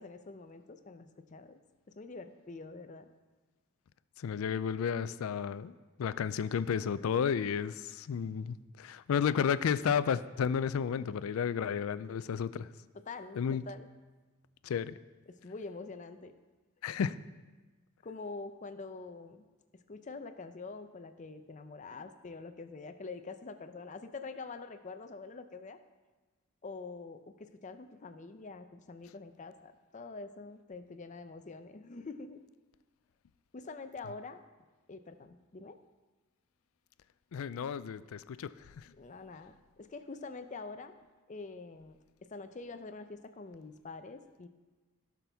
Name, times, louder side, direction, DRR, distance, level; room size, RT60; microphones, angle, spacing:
voice 1, 0.0-1.6 1.9-3.1 12.9-13.9 15.3-16.3 18.0-19.5 19.7-25.8 26.6-32.4 33.5-34.4 34.9-35.8 38.9-40.9 41.3-44.5, left 3 dB, 35° left, 9 dB, 0.5 m, -45 dB
voice 2, 4.2-5.7 6.0-12.7 13.4-13.6 14.6-14.9 16.8-17.2 37.3-38.8, left 7 dB, 85° left, 16 dB, 0.4 m, -32 dB
16.5 x 6.0 x 3.4 m, 1.3 s
head